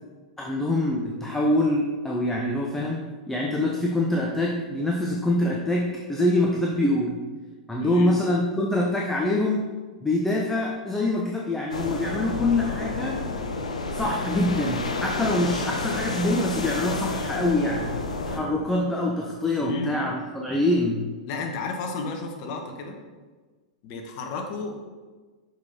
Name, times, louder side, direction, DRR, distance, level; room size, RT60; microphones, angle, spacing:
voice 1, 0.4-7.2 7.7-9.7 10.0-13.2 13.9-18.0 18.2-21.0, left 1 dB, 10° left, -2 dB, 0.8 m, -25 dB
voice 2, 7.8-8.1 19.6-19.9 21.3-22.9 23.8-24.8, left 3 dB, 50° left, 3 dB, 1.2 m, -32 dB
sound 1, 11.7-18.4, left 3 dB, 85° left, 0.8 m, -30 dB
6.2 x 5.4 x 4.3 m, 1.4 s
hypercardioid pair, 100°, 4 cm